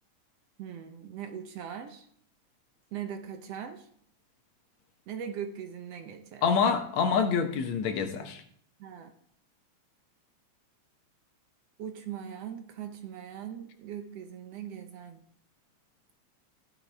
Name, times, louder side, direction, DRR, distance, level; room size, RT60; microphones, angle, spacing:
voice 1, 0.6-2.1 2.9-3.9 5.1-6.5 8.8-9.1 11.8-15.2, right 8 dB, 70° right, 1.7 m, -40 dB
voice 2, 6.4-8.4, left 6 dB, 70° left, 2.2 m, -26 dB
14.5 x 10.0 x 3.4 m
omnidirectional pair, 3.3 m